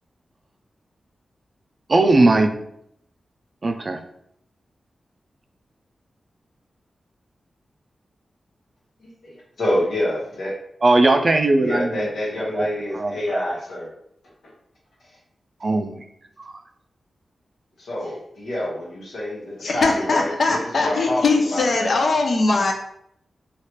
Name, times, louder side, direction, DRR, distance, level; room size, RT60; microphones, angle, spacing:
voice 1, 1.9-2.5 3.6-4.0 10.8-12.0 12.4-12.6 12.9-13.4 15.6-16.0 16.4-16.6, right 2 dB, 45° right, 5 dB, 0.4 m, -19 dB
voice 2, 9.0-10.5 11.6-13.9 17.8-21.9, left 1 dB, 85° left, -5 dB, 1.1 m, -27 dB
voice 3, 19.6-22.7, left 3 dB, 65° left, 3 dB, 0.5 m, -20 dB
3.1 x 2.4 x 2.9 m, 0.73 s
cardioid pair, 75°, 0 cm